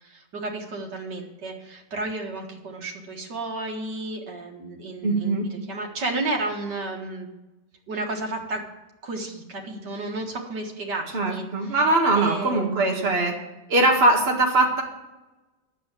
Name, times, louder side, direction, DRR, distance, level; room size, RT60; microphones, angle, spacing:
voice 1, 0.0-7.3 7.9-8.6 9.0-11.8 12.2-13.2, right 2 dB, 75° right, 1 dB, 2.3 m, -32 dB
voice 2, 5.0-5.5 11.1-13.3 13.7-14.8, right 2 dB, 35° right, 1 dB, 2.0 m, -21 dB
9.4 x 7.3 x 9.0 m, 1.1 s
omnidirectional pair, 1.8 m